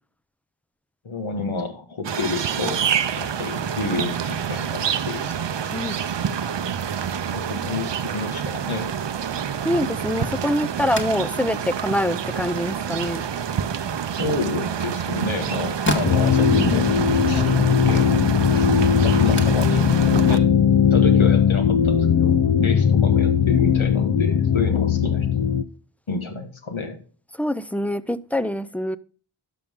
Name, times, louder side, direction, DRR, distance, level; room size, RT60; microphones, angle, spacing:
voice 1, 1.0-2.8 3.2-5.2 7.3-8.9 14.2-18.1 18.5-18.7 19.0-20.5 20.9-25.5 26.1-27.0, left 3 dB, 70° left, 5 dB, 1.9 m, -29 dB
sound 1, 2.0-20.4, right 8 dB, 60° right, 0.7 m, -27 dB
voice 2, 9.6-13.2 27.4-29.0, left 1 dB, 5° left, 15 dB, 0.5 m, -25 dB
sound 2, 10.8-21.3, left 2 dB, 20° left, 1.9 m, -36 dB
sound 3, 16.0-25.6, left 7 dB, 50° left, 0.7 m, -18 dB
12.0 x 6.2 x 3.6 m, 0.40 s
cardioid pair, 45°, 50 cm